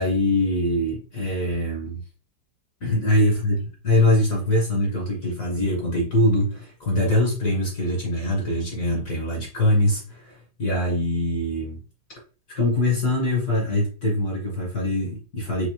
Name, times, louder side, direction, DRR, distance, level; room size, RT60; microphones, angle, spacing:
voice 1, 0.0-2.0 2.8-11.8 12.5-15.7, left 1 dB, 50° left, 1.2 m, -23 dB
4.6 x 2.7 x 2.7 m
omnidirectional pair, 2.3 m